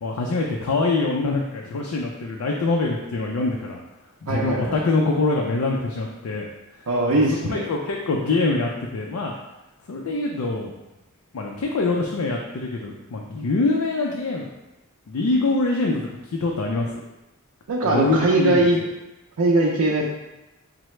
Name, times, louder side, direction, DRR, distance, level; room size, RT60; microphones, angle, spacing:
voice 1, 0.0-3.8 4.2-6.5 6.8-9.3 9.9-10.7 11.3-14.5 15.1-16.9 17.8-18.7, left 3 dB, 75° left, 0 dB, 0.4 m, -24 dB
voice 2, 4.3-4.8 6.9-7.6 17.7-18.8 19.4-20.0, right 2 dB, 85° right, -4 dB, 0.5 m, -20 dB
5.6 x 2.0 x 3.1 m, 0.99 s
head